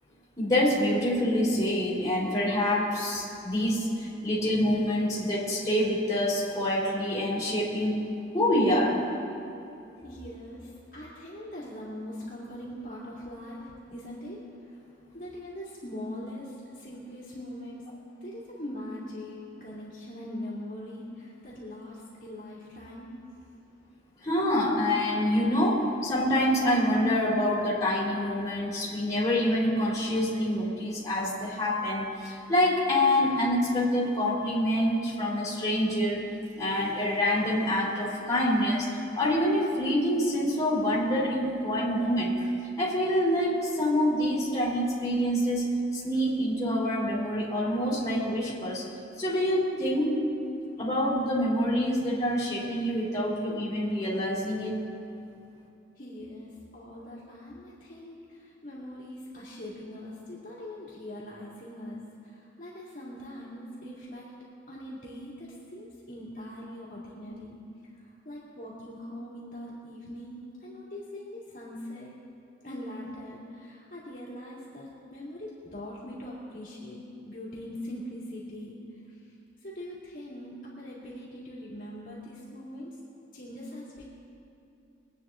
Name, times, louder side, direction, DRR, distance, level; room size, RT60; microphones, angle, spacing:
voice 1, 0.4-8.1 8.3-9.0 24.2-36.2 36.5-38.9 39.1-42.5 42.8-48.8 49.2-50.2 50.8-54.8, left 1 dB, 20° left, -7 dB, 3.3 m, -26 dB
voice 2, 10.0-14.8 15.1-17.9 18.2-23.2 56.0-72.2 72.6-79.4 79.6-83.0 83.3-84.1, left 1 dB, 40° left, -7 dB, 2.5 m, -42 dB
23.0 x 9.1 x 3.8 m, 2.7 s
head